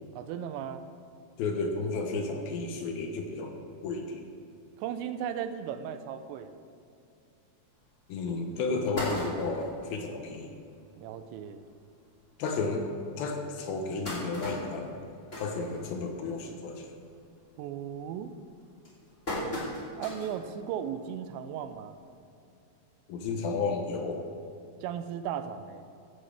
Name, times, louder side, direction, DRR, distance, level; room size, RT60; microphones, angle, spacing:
voice 1, 0.1-0.8 4.8-6.6 11.0-11.6 17.6-18.3 20.0-22.0 24.8-25.9, right 9 dB, 90° right, 10 dB, 2.9 m, -36 dB
voice 2, 1.4-3.5 3.8-4.2 8.1-10.5 12.4-12.8 13.2-14.9 15.4-16.9 23.1-24.2, left 4 dB, 70° left, 3 dB, 2.5 m, -32 dB
sound 1, 7.8-7.9 8.4-8.5 8.7-9.8 10.3-10.4 10.7-10.8 11.1-11.3 12.0-12.1 12.6-12.7 13.5-16.3 16.7-17.0 17.4-17.8 18.4-20.4 20.8-20.9 22.1-22.2, left 1 dB, 20° left, 2.3 m, -36 dB
15.0 x 10.5 x 3.4 m, 2.6 s
omnidirectional pair, 5.0 m